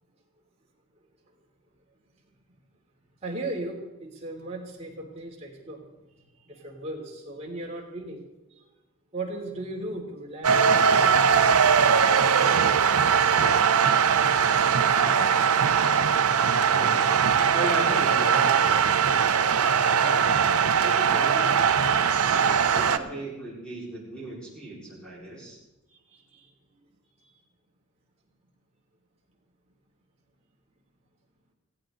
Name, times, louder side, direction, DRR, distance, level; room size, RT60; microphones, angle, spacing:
voice 1, 3.2-5.8 6.4-8.2 8.5-8.7 9.1-11.0 25.9-26.5, right 2 dB, 30° right, -2 dB, 3.2 m, -37 dB
Efx gol, 10.4-23.0, right 7 dB, 85° right, 0.7 m, -21 dB
voice 2, 13.3-13.7 14.8-15.3 16.7-17.0 17.5-21.6 22.3-25.6, right 1 dB, 5° left, -5 dB, 4.7 m, -37 dB
17.0 x 16.0 x 3.9 m, 1.0 s
head